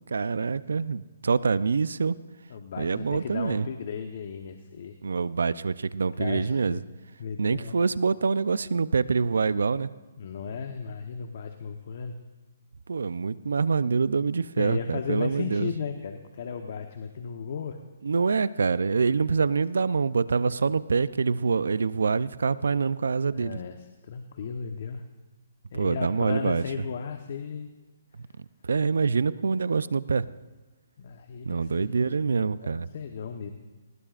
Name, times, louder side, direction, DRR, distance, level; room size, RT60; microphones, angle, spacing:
voice 1, 0.1-2.2 2.8-3.7 5.0-6.8 7.4-9.9 12.9-15.7 18.0-23.6 25.7-26.6 28.6-30.3 31.5-32.9, right 5 dB, 80° right, 17 dB, 0.5 m, -25 dB
voice 2, 2.5-5.0 6.2-6.8 7.2-7.8 10.2-12.2 14.6-17.8 23.3-25.0 25.7-27.7 31.0-31.9 32.4-33.5, left 6 dB, 50° left, 6 dB, 1.1 m, -35 dB
21.5 x 19.5 x 2.5 m, 1.2 s
hypercardioid pair, 160°, 0 cm